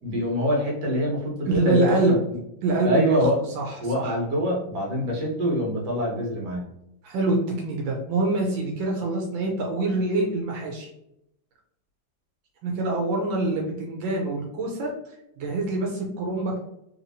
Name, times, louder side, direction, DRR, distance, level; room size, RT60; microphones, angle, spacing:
voice 1, 0.0-2.2 2.8-3.3 3.8-6.6, equal, 65° right, -2 dB, 1.6 m, -25 dB
voice 2, 1.5-2.2 2.6-4.1 7.0-10.9 12.6-16.6, right 2 dB, 85° right, 0 dB, 1.4 m, -25 dB
3.4 x 2.9 x 2.6 m, 0.81 s
omnidirectional pair, 2.1 m